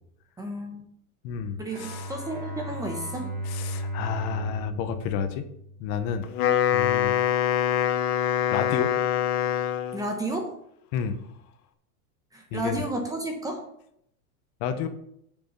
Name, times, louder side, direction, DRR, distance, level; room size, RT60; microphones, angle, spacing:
voice 1, 0.4-0.8 1.6-3.3 9.9-10.5 12.3-13.6, right 1 dB, 10° right, 2 dB, 0.9 m, -32 dB
voice 2, 1.2-2.1 3.4-5.5 5.8-6.3 6.7-7.1 8.5-8.9 10.9-11.2 12.5-12.8 14.6-14.9, left 8 dB, 40° left, 9 dB, 1.0 m, -30 dB
Bowed string instrument, 1.7-6.1, equal, 25° right, 2.1 m, -35 dB
Wind instrument woodwind instrument, 6.2-10.1, left 10 dB, 75° left, 1.2 m, -24 dB
8.4 x 7.1 x 5.2 m, 0.73 s
supercardioid pair, 160°, 44 cm